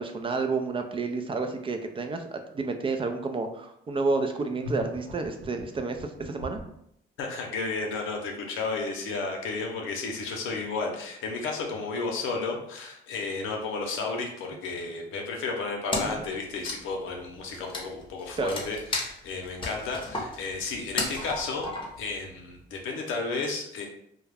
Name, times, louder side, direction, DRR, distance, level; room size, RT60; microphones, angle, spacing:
voice 1, 0.0-6.6 16.0-16.2 18.4-18.6, right 3 dB, 25° right, 5 dB, 0.3 m, -30 dB
sound 1, 4.6-6.8, left 1 dB, 90° right, 0.7 m, -39 dB
voice 2, 7.2-21.7 22.0-23.9, left 3 dB, 90° left, 1 dB, 0.6 m, -32 dB
Wood, 15.9-16.3 16.5-22.1, left 2 dB, 25° left, 0.7 m, -34 dB
2.3 x 2.1 x 3.3 m, 0.74 s
cardioid pair, 90°, 20 cm